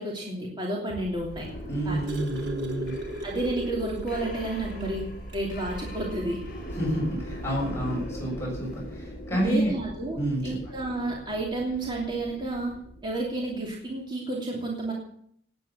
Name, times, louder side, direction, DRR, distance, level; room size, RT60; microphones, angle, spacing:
voice 1, 0.0-1.5 1.8-2.0 3.2-5.0 5.3-6.4 9.3-10.2 10.4-12.7 13.0-14.9, right 2 dB, 30° right, -3 dB, 2.9 m, -31 dB
sound 1, 1.0-13.7, equal, 55° left, 5.0 m, -40 dB
sound 2, 1.5-4.4 4.8-4.9 5.3-5.5 6.6-6.7, equal, 80° right, 3.4 m, -36 dB
voice 2, 1.7-3.0 6.7-9.7 10.1-10.6, right 1 dB, 15° left, -5 dB, 6.9 m, -29 dB
18.0 x 9.4 x 7.0 m, 0.66 s
head